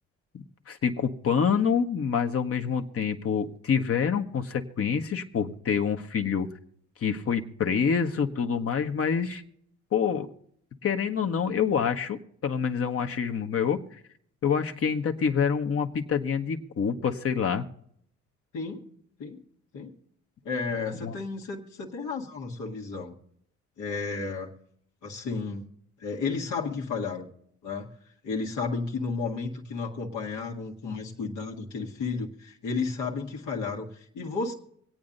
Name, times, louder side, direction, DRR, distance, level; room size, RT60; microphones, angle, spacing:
voice 1, 0.7-6.5 7.0-9.4 9.9-10.3 10.8-13.8 14.4-17.6 21.0-21.1, left 6 dB, 50° left, 5 dB, 1.1 m, -26 dB
voice 2, 18.5-18.8 19.2-19.4 19.7-19.9 20.4-23.2 23.8-24.5 25.0-25.7 26.0-27.3 27.6-27.9 28.2-34.5, left 4 dB, 80° left, -1 dB, 1.7 m, -32 dB
25.5 x 8.6 x 2.6 m, 0.67 s
cardioid pair, 90°, 30 cm